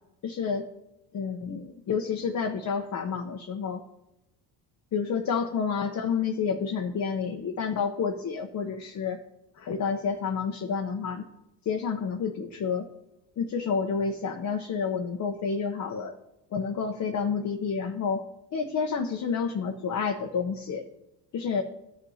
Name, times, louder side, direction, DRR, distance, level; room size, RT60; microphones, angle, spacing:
voice 1, 0.2-0.7 1.1-3.8 4.9-9.2 9.6-11.3 11.7-12.9 13.4-16.1 16.5-18.2 18.5-20.8 21.3-21.6, left 6 dB, 40° left, 3 dB, 0.8 m, -29 dB
15.0 x 5.5 x 2.8 m, 0.92 s
supercardioid pair, 90°, 45 cm